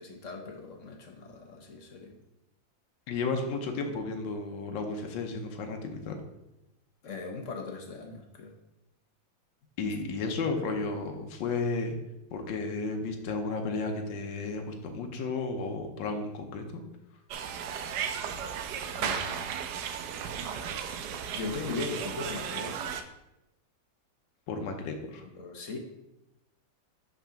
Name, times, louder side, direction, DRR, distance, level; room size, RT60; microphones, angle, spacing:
voice 1, 0.0-2.1 7.0-8.5 19.0-19.7 21.3-22.9 25.2-25.8, left 3 dB, 55° left, 2 dB, 0.9 m, -39 dB
voice 2, 3.1-6.2 9.8-12.0 12.3-16.8 24.5-25.3, left 3 dB, 75° left, 4 dB, 1.5 m, -33 dB
sound 1, 17.3-23.0, right 7 dB, 70° right, 1.0 m, -35 dB
5.9 x 4.0 x 5.7 m, 0.92 s
omnidirectional pair, 2.1 m